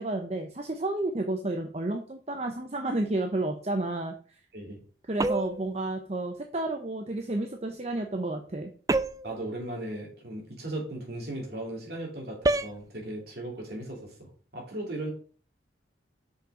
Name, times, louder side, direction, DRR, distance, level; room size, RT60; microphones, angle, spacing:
voice 1, 0.0-4.1 5.1-8.7, right 2 dB, 35° right, 4 dB, 0.7 m, -31 dB
sound 1, 5.2-5.7 8.9-9.4 12.4-12.8, right 2 dB, 20° right, 0.3 m, -27 dB
voice 2, 9.2-15.1, right 1 dB, 55° right, -1 dB, 3.2 m, -37 dB
6.5 x 5.6 x 5.0 m, 0.41 s
head